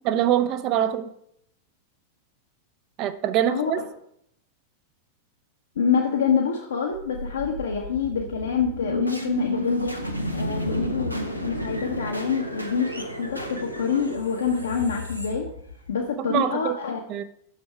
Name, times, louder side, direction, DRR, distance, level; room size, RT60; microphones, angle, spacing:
voice 1, 0.0-1.1 3.0-3.8 16.2-16.8 17.1-17.2, right 11 dB, 40° right, 11 dB, 0.7 m, -24 dB
voice 2, 5.8-10.0 10.3-15.4 15.9-17.0, left 6 dB, 65° left, 0 dB, 1.0 m, -26 dB
sound 1, 6.9-16.1, left 1 dB, 90° right, 1.0 m, -32 dB
9.2 x 6.4 x 4.6 m, 0.72 s
figure-of-eight pair, 90°, 0 cm